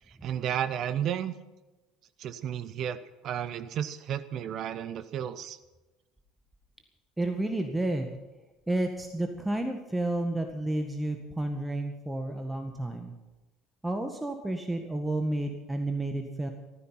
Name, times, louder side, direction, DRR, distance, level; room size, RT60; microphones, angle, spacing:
voice 1, 0.2-1.3 2.2-3.0 3.2-5.6, right 9 dB, 50° right, 14 dB, 0.9 m, -32 dB
voice 2, 7.2-8.2 8.7-13.1 13.8-16.5, right 1 dB, 10° right, 5 dB, 1.7 m, -31 dB
15.5 x 14.0 x 5.8 m, 1.1 s
figure-of-eight pair, 65°, 0 cm